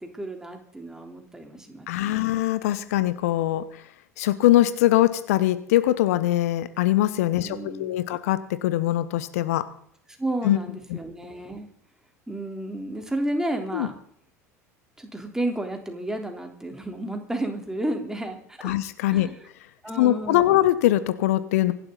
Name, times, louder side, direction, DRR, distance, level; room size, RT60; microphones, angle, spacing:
voice 1, 0.0-2.3 7.4-8.2 10.2-11.7 12.3-13.9 15.0-18.7 19.1-19.3 19.8-20.6, right 1 dB, 5° right, 4 dB, 3.6 m, -32 dB
voice 2, 1.9-3.8 4.2-9.7 10.4-10.6 10.9-11.0 13.7-13.9 18.6-19.3 20.0-21.7, left 14 dB, 70° left, 14 dB, 1.0 m, -22 dB
25.0 x 12.0 x 4.0 m, 0.66 s
figure-of-eight pair, 75°, 8 cm